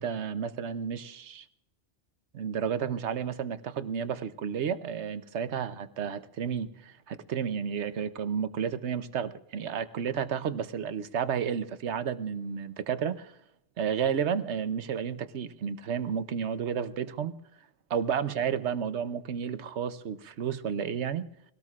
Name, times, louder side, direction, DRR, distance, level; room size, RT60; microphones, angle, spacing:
voice 1, 0.0-1.5 2.3-13.3 13.8-17.3 17.9-21.3, right 7 dB, 75° right, 12 dB, 1.1 m, -32 dB
23.0 x 18.0 x 2.5 m, 0.77 s
omnidirectional pair, 1.2 m